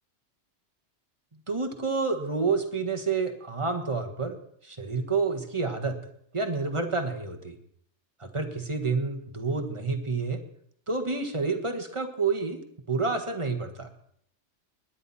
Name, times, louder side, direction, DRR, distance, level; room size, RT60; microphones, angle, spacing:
voice 1, 1.3-4.4 4.6-6.0 6.3-7.6 8.2-10.4 10.9-12.6 12.9-13.9, right 4 dB, 25° right, 5 dB, 1.5 m, -29 dB
20.5 x 10.5 x 4.3 m, 0.69 s
omnidirectional pair, 1.2 m